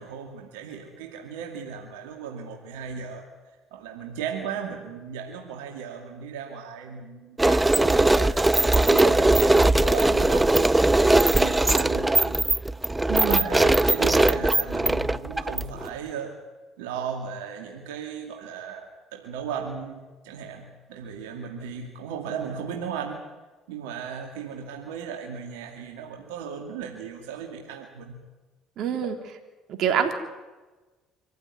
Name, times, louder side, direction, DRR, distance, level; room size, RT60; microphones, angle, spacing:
voice 1, 0.0-3.3 3.7-12.4 13.2-16.4 16.8-23.2 23.7-28.2 28.9-29.2, right 7 dB, 90° right, 2 dB, 2.4 m, -36 dB
sound 1, 7.4-15.9, right 2 dB, 15° right, 0.7 m, -20 dB
voice 2, 13.1-13.5 28.8-29.2 29.8-30.1, right 8 dB, 65° right, 5 dB, 3.4 m, -25 dB
25.5 x 14.5 x 9.8 m, 1.2 s
supercardioid pair, 70°, 0 cm